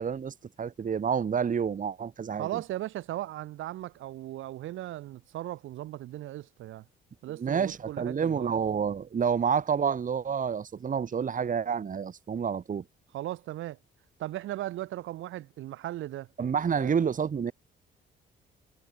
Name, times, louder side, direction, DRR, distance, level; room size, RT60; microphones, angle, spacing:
voice 1, 0.0-2.6 7.4-12.8 16.4-17.5, right 7 dB, 40° right, 1.7 m, -29 dB
voice 2, 2.4-6.9 7.2-8.5 13.1-13.8 14.2-16.3 16.7-16.9, right 14 dB, 85° right, 1.9 m, -37 dB
cardioid pair, 90°, 20 cm